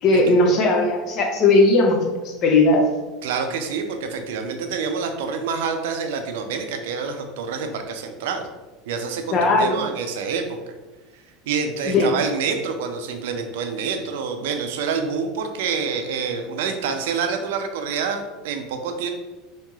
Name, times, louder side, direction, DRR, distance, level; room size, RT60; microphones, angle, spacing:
voice 1, 0.0-2.0 2.2-2.8 9.3-9.8 11.9-12.1, left 2 dB, 35° left, 2 dB, 0.5 m, -17 dB
voice 2, 3.2-8.5 8.9-10.7 11.5-19.1, right 5 dB, 85° right, 6 dB, 0.4 m, -27 dB
3.0 x 2.8 x 2.3 m, 1.2 s
supercardioid pair, 160°, 0 cm